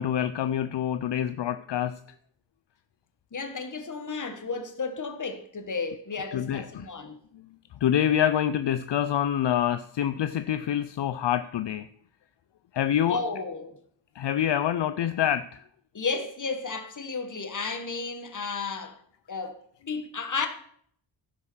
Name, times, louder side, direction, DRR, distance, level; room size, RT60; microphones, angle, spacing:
voice 1, 0.0-2.0 6.3-6.9 7.3-7.4 7.8-11.9 12.7-13.2 14.1-15.6, left 10 dB, 70° left, 0.6 m, -26 dB
voice 2, 3.3-7.2 13.0-13.7 15.9-19.0 19.3-19.6 19.9-20.5, left 4 dB, 40° left, 1.6 m, -33 dB
15.5 x 5.7 x 6.3 m
wide cardioid pair, 105°, 44 cm